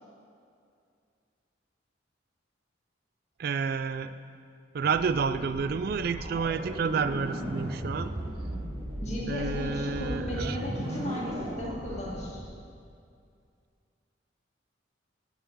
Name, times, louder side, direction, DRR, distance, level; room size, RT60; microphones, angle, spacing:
voice 1, 3.4-4.1 4.7-8.1 9.3-10.6, right 5 dB, 55° right, 12 dB, 0.3 m, -30 dB
sound 1, 4.8-12.4, equal, 30° right, 1.2 m, -36 dB
voice 2, 9.0-12.4, left 1 dB, 35° left, -4 dB, 1.9 m, -35 dB
9.0 x 5.6 x 7.1 m, 2.3 s
head